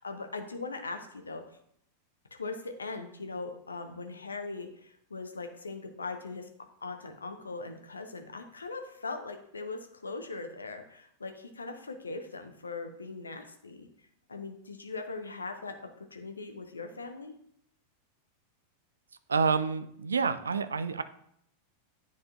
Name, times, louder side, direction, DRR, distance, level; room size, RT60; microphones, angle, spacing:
voice 1, 0.0-1.4 2.4-6.5 6.8-13.9 14.3-17.3, left 3 dB, 75° left, 6 dB, 0.8 m, -40 dB
voice 2, 19.3-21.0, right 5 dB, 75° right, 12 dB, 0.4 m, -28 dB
10.0 x 4.1 x 2.5 m, 0.70 s
figure-of-eight pair, 90°, 0 cm